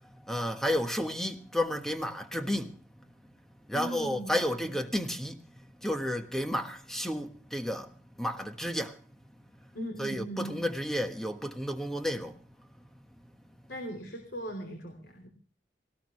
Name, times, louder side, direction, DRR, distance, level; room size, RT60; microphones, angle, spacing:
voice 1, 0.2-2.7 3.7-5.4 5.8-9.0 10.0-12.4, equal, 5° left, 1.4 m, -32 dB
voice 2, 3.7-4.3 4.6-4.8 9.7-10.5 13.7-15.3, right 1 dB, 70° left, 3.2 m, -39 dB
19.5 x 18.5 x 3.2 m
head